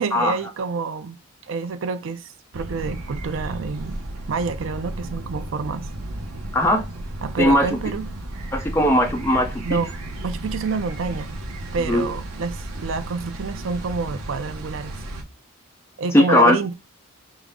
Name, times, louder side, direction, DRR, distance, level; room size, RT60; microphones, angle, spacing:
voice 1, 0.0-4.0 4.3-5.9 7.2-8.1 9.6-10.0 10.2-11.3 11.7-15.0 16.0-16.7, right 4 dB, 60° right, 0.4 m, -28 dB
sound 1, 2.5-15.2, right 1 dB, 80° right, 0.9 m, -34 dB
voice 2, 7.4-7.7 8.5-9.8 11.9-12.1 16.1-16.6, left 1 dB, 10° left, 0.7 m, -18 dB
5.9 x 2.1 x 3.5 m
head